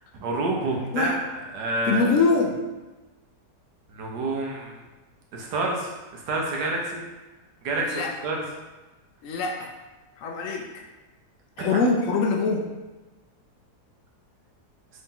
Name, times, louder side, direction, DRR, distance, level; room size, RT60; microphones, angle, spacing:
voice 1, 0.2-1.1 1.5-2.1 3.9-4.8 5.3-7.0 7.6-8.4 11.6-11.8, right 2 dB, 85° right, -1 dB, 1.3 m, -28 dB
voice 2, 1.9-2.6 7.8-8.1 9.2-9.7 10.2-10.7 11.6-12.7, left 4 dB, 70° left, 1 dB, 0.8 m, -23 dB
3.9 x 2.7 x 3.6 m, 1.1 s
omnidirectional pair, 1.7 m